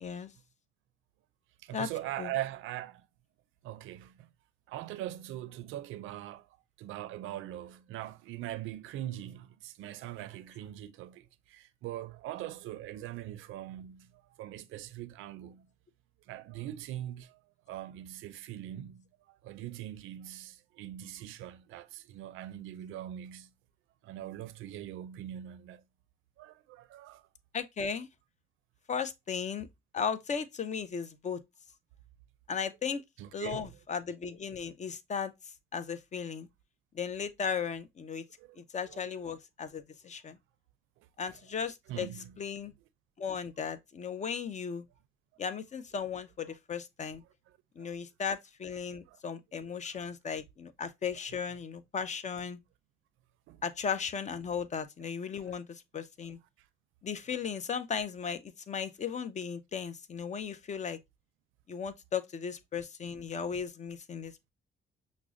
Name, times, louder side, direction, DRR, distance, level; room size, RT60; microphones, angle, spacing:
voice 1, 0.0-0.3 1.7-1.9 2.2-2.3 27.5-28.1 28.9-29.7 29.9-31.4 32.5-33.0 33.3-35.3 35.7-36.5 36.9-38.2 38.6-40.4 41.2-42.1 42.4-42.7 43.2-44.8 45.4-47.2 47.8-52.6 53.6-55.7 55.9-56.4 57.0-61.0 61.7-64.5, left 6 dB, 35° left, 0.5 m, -36 dB
voice 2, 1.6-3.1 3.6-4.3 4.7-6.5 6.8-15.7 16.3-17.4 17.7-23.5 24.0-25.8 26.4-27.2 33.2-33.8 38.4-39.3 41.9-42.4 47.5-48.0 49.1-49.2 49.7-50.1 53.5-53.6 55.4-55.6, right 13 dB, 85° right, 0.4 m, -42 dB
5.8 x 2.1 x 2.4 m
cardioid pair, 90°, 20 cm